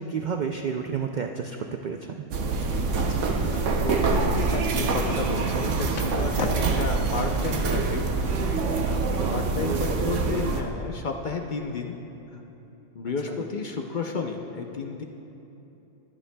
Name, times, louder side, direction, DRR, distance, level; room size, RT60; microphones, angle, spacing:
voice 1, 0.0-1.6 1.8-2.2 6.4-6.8 9.2-10.1, right 6 dB, 65° right, 4 dB, 0.4 m, -31 dB
sound 1, 2.3-10.6, right 4 dB, 80° right, 1.1 m, -25 dB
voice 2, 3.0-8.1 8.8-11.9 12.3-12.4 12.9-15.0, left 4 dB, 50° left, 3 dB, 0.7 m, -32 dB
Skateboard, 3.9-9.1, left 4 dB, 90° left, 1.1 m, -40 dB
21.0 x 9.6 x 2.2 m, 3.0 s
omnidirectional pair, 1.2 m